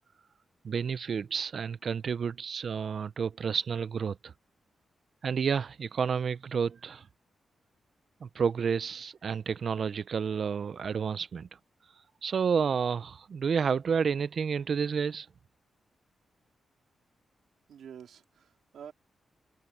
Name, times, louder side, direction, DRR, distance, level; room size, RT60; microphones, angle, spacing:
voice 1, 0.6-4.3 5.2-7.1 8.2-11.5 12.2-15.3, right 6 dB, 50° right, 0.4 m, -30 dB
voice 2, 17.7-18.9, right 8 dB, 85° right, 2.9 m, -48 dB
wide cardioid pair, 165°, 0 cm